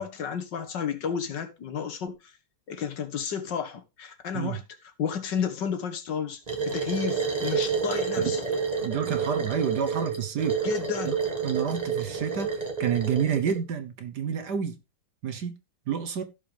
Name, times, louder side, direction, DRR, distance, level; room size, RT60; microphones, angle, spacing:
voice 1, 0.0-2.3 2.7-4.6 5.0-8.4 10.6-11.1, left 7 dB, 60° left, 1.8 m, -32 dB
sound 1, 6.5-13.6, right 5 dB, 20° right, 1.6 m, -29 dB
voice 2, 8.8-10.6 11.0-11.2 11.4-12.5 12.8-14.8 15.2-15.5 15.9-16.2, right 7 dB, 60° right, 1.4 m, -29 dB
16.0 x 5.4 x 3.4 m
omnidirectional pair, 2.2 m